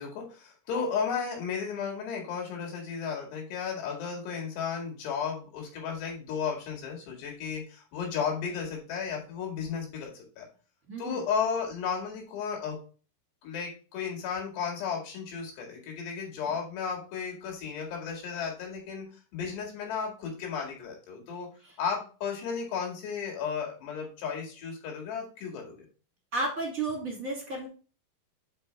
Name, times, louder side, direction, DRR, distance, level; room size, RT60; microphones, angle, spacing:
voice 1, 0.0-10.5 11.0-12.8 13.4-19.1 19.3-21.5 21.8-25.9, left 6 dB, 85° left, 0 dB, 4.3 m, -34 dB
voice 2, 10.9-11.2 21.6-21.7 26.3-27.7, right 2 dB, 30° right, -1 dB, 1.9 m, -32 dB
8.3 x 5.0 x 3.2 m, 0.36 s
omnidirectional pair, 4.7 m